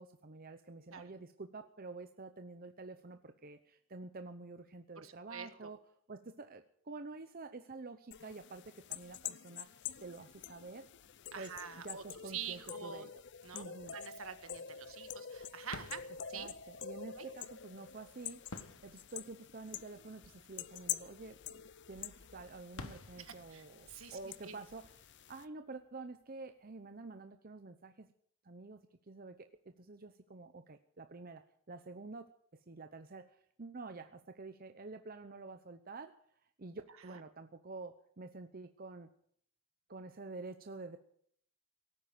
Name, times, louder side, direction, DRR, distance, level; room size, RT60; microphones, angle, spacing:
voice 1, 0.0-5.8 6.1-9.7 10.0-10.9 11.4-11.5 11.8-13.1 13.5-14.0 16.3-18.4 18.8-21.6 21.9-28.1 28.4-29.4 29.6-36.1 36.6-39.1 39.9-41.0, right 3 dB, 45° right, 8 dB, 0.8 m, -49 dB
voice 2, 5.0-5.7 11.3-13.1 13.4-16.0 16.3-16.5 17.2-17.3 23.2-24.6 37.1-37.2, right 7 dB, 70° right, 9 dB, 1.7 m, -47 dB
sound 1, 8.1-25.4, left 9 dB, 55° left, 0.6 m, -47 dB
sound 2, 15.6-26.2, left 2 dB, 75° left, 1.4 m, -55 dB
18.0 x 9.3 x 8.8 m, 0.64 s
head